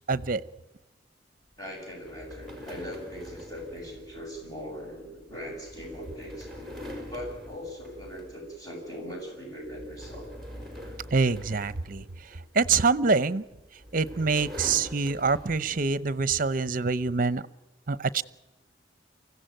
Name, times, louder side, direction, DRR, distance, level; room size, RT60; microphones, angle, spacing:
voice 1, 0.1-0.4 11.1-13.4 13.9-17.4 17.9-18.2, right 4 dB, 50° right, 17 dB, 0.8 m, -25 dB
voice 2, 1.6-6.8 7.1-10.3, equal, 20° left, -1 dB, 7.0 m, -40 dB
sound 1, 2.0-8.6 8.9-9.2 9.6-12.6 13.5-15.9, equal, ahead, 5.0 m, -44 dB
24.5 x 16.0 x 9.1 m, 1.1 s
head